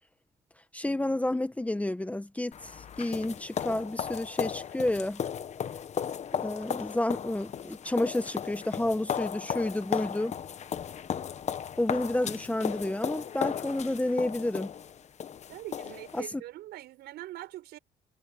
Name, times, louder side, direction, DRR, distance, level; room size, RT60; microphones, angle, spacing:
voice 1, 0.7-2.7 3.0-5.2 6.3-10.3 11.8-14.7 16.1-16.4, left 1 dB, 10° left, 1.1 m, -30 dB
sound 1, 2.5-16.2, left 8 dB, 45° left, 1.1 m, -36 dB
voice 2, 15.5-17.8, right 15 dB, 75° right, 5.2 m, -43 dB
cardioid pair, 110°, 17 cm